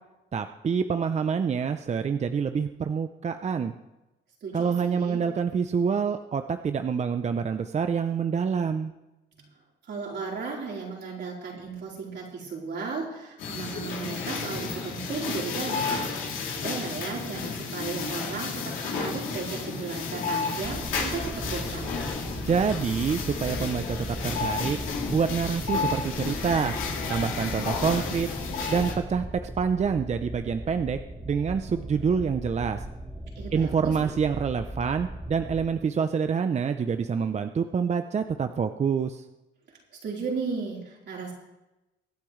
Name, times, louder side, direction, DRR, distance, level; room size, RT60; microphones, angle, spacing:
voice 1, 0.3-3.7 4.5-8.9 22.5-24.8 25.1-26.7 27.1-28.3 28.7-29.2 29.6-31.0 31.3-32.8 33.5-39.2, right 6 dB, 35° right, 8 dB, 0.6 m, -26 dB
voice 2, 4.4-5.2 9.3-9.5 9.8-22.0 33.4-34.1 40.0-41.3, right 4 dB, 60° right, -3 dB, 4.1 m, -35 dB
sound 1, 13.4-28.9, left 5 dB, 90° left, 2.8 m, -32 dB
sound 2, 20.6-35.6, right 1 dB, 10° right, 1.3 m, -38 dB
24.0 x 8.5 x 3.2 m, 1.0 s
cardioid pair, 90°, 20 cm